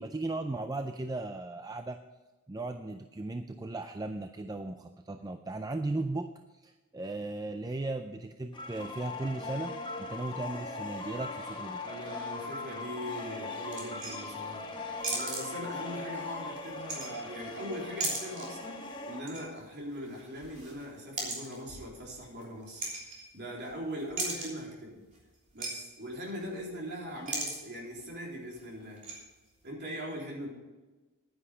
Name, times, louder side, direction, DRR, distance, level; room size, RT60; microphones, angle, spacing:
voice 1, 0.0-2.0 2.5-11.8, right 2 dB, 15° right, 7 dB, 0.4 m, -37 dB
sound 1, 8.5-19.2, left 3 dB, 20° left, 1.2 m, -40 dB
voice 2, 11.8-14.8 15.1-22.9 23.3-25.0 25.5-29.0 29.6-30.5, equal, 50° right, -2 dB, 3.6 m, -41 dB
sound 2, 13.7-14.5 15.0-15.9 16.6-17.5 17.8-18.6 18.9-19.5 19.8-23.7 24.0-24.7 25.1-25.2 25.5-25.7 26.0-26.1 26.4-26.7 27.1-27.6 27.9-28.0 28.6-29.2, right 3 dB, 35° right, 3.3 m, -38 dB
10.5 x 9.9 x 5.1 m, 1.2 s
head